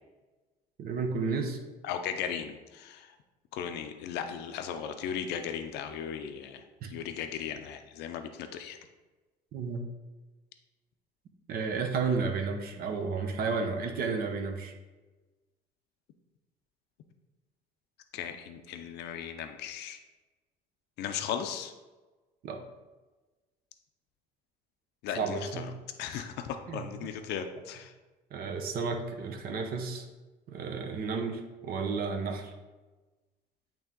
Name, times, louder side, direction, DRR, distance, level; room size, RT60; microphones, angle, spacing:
voice 1, 0.8-1.6 6.8-6.9 9.5-9.9 11.5-14.7 22.4-22.6 25.1-25.7 26.1-26.2 26.7-26.9 28.3-30.0 30.5-32.5, right 4 dB, 60° right, 4 dB, 0.9 m, -32 dB
voice 2, 1.8-3.1 3.5-8.8 18.1-20.0 21.0-21.7 25.0-25.7 26.0-27.9, left 8 dB, 80° left, 7 dB, 0.5 m, -37 dB
8.8 x 3.0 x 3.7 m, 1.2 s
cardioid pair, 110°, 17 cm